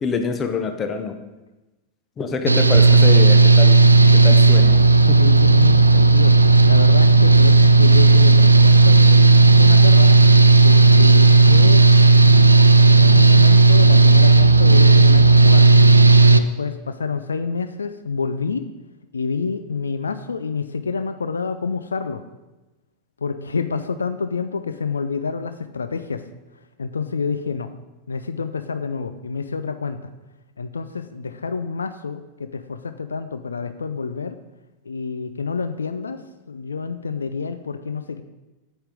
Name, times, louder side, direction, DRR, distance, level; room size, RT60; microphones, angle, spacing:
voice 1, 0.0-1.1 2.2-3.9 4.2-4.8 5.1-5.2, left 5 dB, 25° left, 7 dB, 1.0 m, -26 dB
Engine / Mechanical fan, 2.5-16.4, right 3 dB, 85° right, 0.4 m, -12 dB
voice 2, 5.2-6.3 6.6-10.1 10.6-11.9 12.9-15.8 16.3-18.7 19.1-22.2 23.2-26.2 26.8-27.7 28.1-30.0 30.6-34.4 34.9-36.2 36.5-38.2, left 5 dB, 75° left, 11 dB, 0.5 m, -28 dB
8.7 x 8.0 x 5.2 m, 1.1 s
figure-of-eight pair, 90°, 0 cm